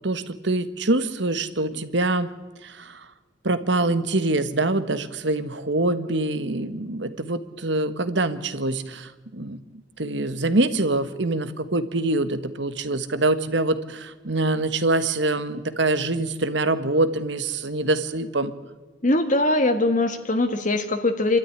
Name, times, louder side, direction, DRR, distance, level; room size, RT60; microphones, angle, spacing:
voice 1, 0.0-2.3 2.6-3.0 3.4-9.6 10.0-18.5, right 2 dB, 65° right, 11 dB, 1.5 m, -24 dB
voice 2, 19.0-21.4, left 2 dB, 40° left, 7 dB, 1.6 m, -21 dB
27.5 x 13.0 x 10.0 m, 1.3 s
head